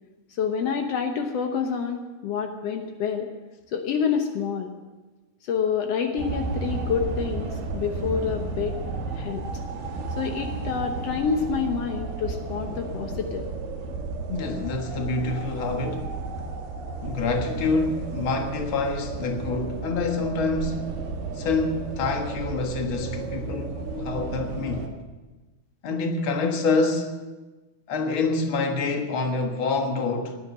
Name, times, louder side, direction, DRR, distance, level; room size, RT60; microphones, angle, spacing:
voice 1, 0.3-3.3 3.7-4.7 5.4-8.8 9.1-9.4 10.2-13.5, left 6 dB, 85° left, 1.4 m, -27 dB
sound 1, 6.2-24.9, right 4 dB, 80° right, 3.7 m, -33 dB
voice 2, 14.3-16.2 17.0-20.9 21.3-24.9 25.8-27.1 27.9-30.4, left 3 dB, 50° left, 1.5 m, -27 dB
18.0 x 10.5 x 7.5 m
omnidirectional pair, 4.5 m